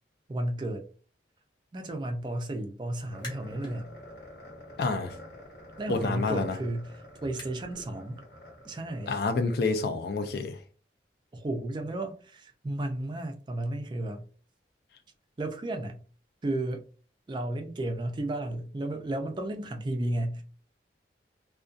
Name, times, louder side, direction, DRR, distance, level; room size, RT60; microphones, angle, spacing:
voice 1, 0.3-0.8 1.7-3.9 5.8-8.2 8.6-9.1 11.3-14.2 15.4-16.0 16.4-16.8 17.3-20.4, right 1 dB, 25° right, 0.3 m, -33 dB
sound 1, 3.1-9.5, left 1 dB, 80° left, 1.2 m, -48 dB
sound 2, 3.1-3.8 4.2-7.9, left 1 dB, 25° left, 0.8 m, -50 dB
voice 2, 4.8-5.1 5.9-6.6 9.1-10.6, left 3 dB, 60° left, 0.4 m, -28 dB
2.6 x 2.2 x 2.3 m
head